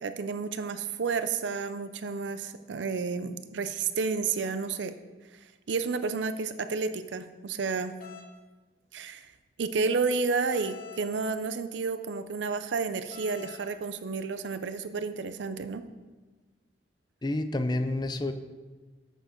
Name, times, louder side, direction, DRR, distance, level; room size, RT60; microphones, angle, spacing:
voice 1, 0.0-4.9 5.7-7.9 8.9-9.3 9.6-15.8, right 4 dB, 85° right, 11 dB, 0.5 m, -31 dB
sound 1, 8.0-8.3 10.5-11.1 13.1-13.7, left 6 dB, 50° left, 1.0 m, -45 dB
voice 2, 17.2-18.3, left 2 dB, 25° left, 9 dB, 0.5 m, -29 dB
7.9 x 6.8 x 4.4 m, 1.3 s
head